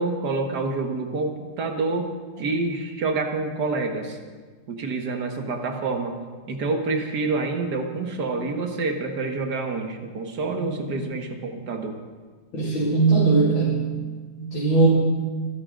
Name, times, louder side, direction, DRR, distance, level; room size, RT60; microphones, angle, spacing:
voice 1, 0.0-2.1 2.4-4.2 4.7-6.2 6.5-12.0, right 3 dB, 55° right, 4 dB, 2.0 m, -27 dB
voice 2, 12.5-13.8 14.4-14.9, right 3 dB, 80° left, -5 dB, 3.2 m, -20 dB
25.0 x 12.0 x 3.8 m, 1.4 s
omnidirectional pair, 2.1 m